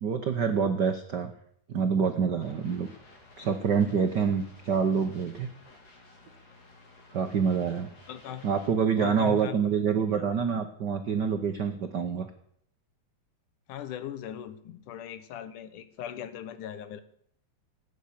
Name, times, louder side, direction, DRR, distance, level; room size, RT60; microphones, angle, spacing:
voice 1, 0.0-1.3 1.7-2.9 3.4-5.5 7.1-7.9 8.4-12.3, right 6 dB, 85° right, 6 dB, 0.9 m, -26 dB
sound 1, 2.4-8.7, left 2 dB, 55° left, 3.9 m, -55 dB
voice 2, 8.1-8.4 9.0-9.7 10.1-10.3 13.7-17.0, left 10 dB, 90° left, 12 dB, 2.7 m, -39 dB
16.5 x 9.1 x 8.6 m, 0.69 s
omnidirectional pair, 3.5 m